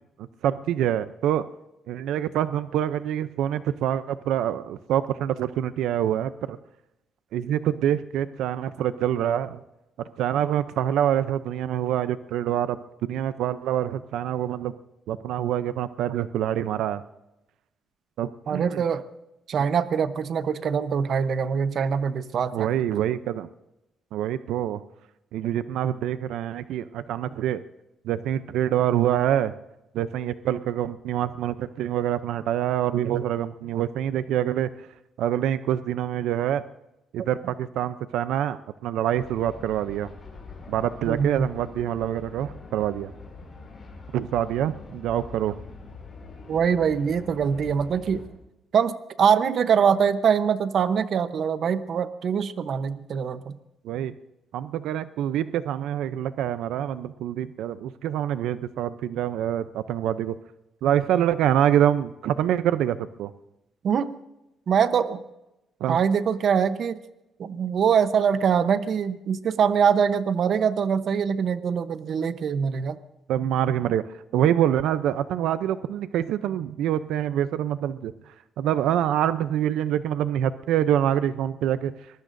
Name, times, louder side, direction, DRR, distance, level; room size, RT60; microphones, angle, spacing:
voice 1, 0.4-1.4 1.9-6.6 7.3-9.6 10.2-14.7 15.1-17.0 18.2-18.8 22.5-23.5 24.1-24.8 25.3-27.6 28.0-29.5 29.9-34.9 35.2-36.6 37.1-40.1 40.7-43.1 44.1-45.6 53.8-54.1 54.5-60.4 60.8-63.3 65.8-66.0 73.3-78.1 78.6-81.9, right 10 dB, 90° right, 13 dB, 0.5 m, -26 dB
voice 2, 18.5-19.0 19.5-22.7 41.1-41.5 46.5-48.2 48.7-53.6 63.8-64.2 64.7-65.2 65.9-67.0 67.4-73.0, right 7 dB, 50° right, 12 dB, 0.9 m, -23 dB
sound 1, 39.2-48.3, left 3 dB, 25° left, 5.9 m, -44 dB
24.0 x 20.0 x 2.6 m, 0.92 s
cardioid pair, 155°, 0 cm